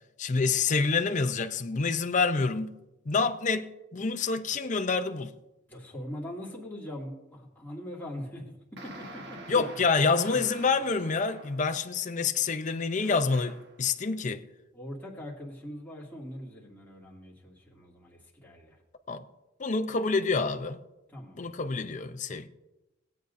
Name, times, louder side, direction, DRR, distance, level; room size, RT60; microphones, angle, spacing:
voice 1, 0.2-2.7 3.1-5.3 9.5-14.4 19.1-19.2 19.6-20.8 21.3-22.5, left 4 dB, 40° left, 0.6 m, -27 dB
voice 2, 5.7-9.6 10.3-10.4 14.7-18.8 21.1-21.5, equal, 10° left, 2.3 m, -42 dB
sound 1, 8.8-11.8 13.0-13.8, right 2 dB, 55° right, 1.2 m, -46 dB
20.0 x 8.3 x 2.6 m
head